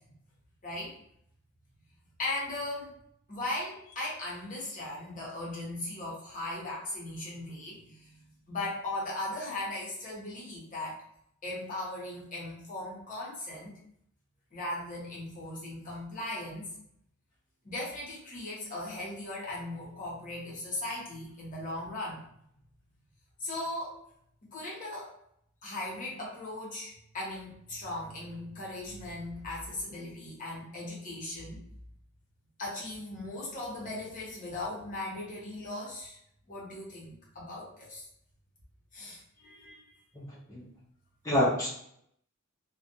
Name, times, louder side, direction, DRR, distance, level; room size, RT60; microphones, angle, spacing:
voice 1, 0.6-0.9 2.2-3.0 3.3-11.0 11.4-13.8 14.5-16.7 17.6-22.2 23.4-24.0 24.5-25.2 25.6-31.6 32.6-36.2 36.5-38.0 38.9-39.8, left 2 dB, 40° left, -5 dB, 0.9 m, -38 dB
voice 2, 40.1-40.7 41.2-41.7, left 1 dB, 15° left, -8 dB, 0.5 m, -28 dB
2.4 x 2.2 x 2.6 m, 0.71 s
head